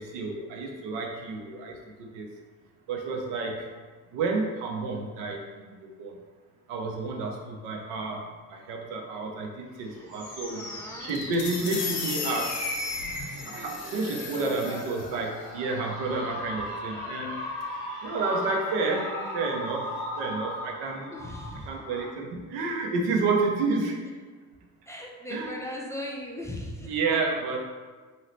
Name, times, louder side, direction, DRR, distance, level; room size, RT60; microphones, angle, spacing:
voice 1, 0.0-2.3 2.9-3.7 4.1-6.1 6.7-8.2 8.5-10.6 11.0-12.7 13.5-17.4 18.0-19.1 19.3-19.9 20.2-21.1 21.7-24.0 25.3-25.9 26.9-27.7, right 3 dB, 65° right, 1 dB, 0.7 m, -30 dB
sound 1, 9.7-22.1, left 1 dB, 90° left, 0.7 m, -37 dB
voice 2, 10.5-11.2 14.2-14.8 18.1-19.4 21.1-21.8 24.9-27.2, left 1 dB, 5° left, -2 dB, 0.4 m, -40 dB
sound 2, 11.1-15.1, left 5 dB, 50° left, 0.6 m, -36 dB
2.8 x 2.7 x 3.1 m, 1.4 s
figure-of-eight pair, 45°, 45 cm